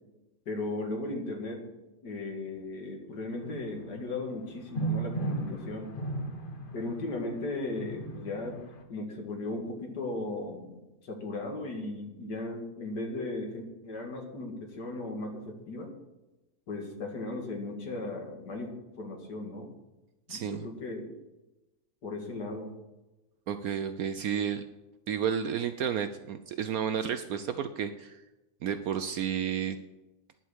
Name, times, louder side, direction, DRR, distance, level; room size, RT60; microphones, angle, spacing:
voice 1, 0.5-1.6 2.0-5.9 6.7-8.6 8.9-15.9 16.7-19.7 20.3-21.1 22.0-22.7, left 2 dB, 75° left, 2 dB, 2.6 m, -36 dB
sound 1, 3.4-8.8, right 2 dB, 35° left, 1.1 m, -36 dB
voice 2, 20.3-20.7 23.5-24.6 25.1-28.2 28.6-29.8, right 8 dB, 70° right, 10 dB, 1.0 m, -31 dB
10.5 x 7.8 x 6.3 m, 1.0 s
omnidirectional pair, 1.8 m